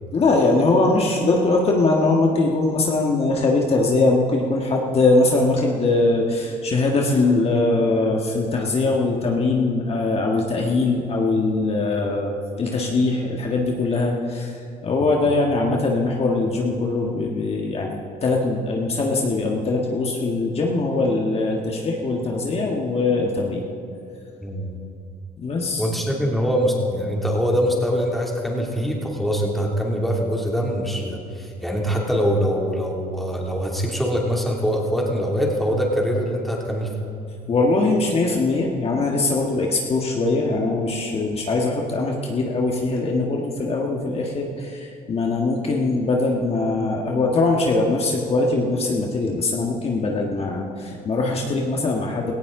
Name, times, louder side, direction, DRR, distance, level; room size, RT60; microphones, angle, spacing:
voice 1, 0.1-23.6 25.4-25.9 37.5-52.4, left 3 dB, 40° left, 0 dB, 1.6 m, -21 dB
voice 2, 25.8-36.9, equal, ahead, -2 dB, 2.8 m, -23 dB
17.5 x 16.0 x 3.9 m, 2.5 s
cardioid pair, 110°, 16 cm